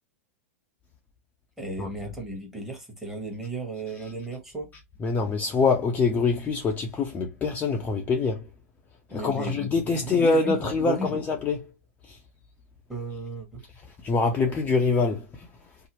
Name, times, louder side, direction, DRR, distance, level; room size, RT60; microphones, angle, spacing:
voice 1, 1.6-4.7 9.1-11.2 12.9-13.6, right 2 dB, 5° right, 1.1 m, -35 dB
voice 2, 5.0-8.5 9.1-11.6 12.0-12.2 14.0-15.5, left 4 dB, 20° left, 0.5 m, -25 dB
2.7 x 2.0 x 2.9 m
hypercardioid pair, 110°, 8 cm